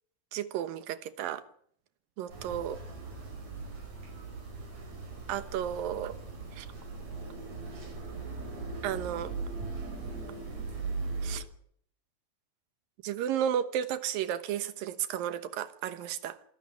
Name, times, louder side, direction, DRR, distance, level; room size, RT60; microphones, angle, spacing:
voice 1, 0.3-1.4 2.2-2.8 5.3-6.2 6.5-6.7 8.8-9.3 11.2-11.4 13.0-16.4, right 10 dB, 80° right, 12 dB, 2.9 m, -33 dB
sound 1, 2.3-11.4, right 3 dB, 50° right, 6.3 m, -39 dB
26.0 x 11.5 x 9.7 m, 0.66 s
omnidirectional pair, 4.0 m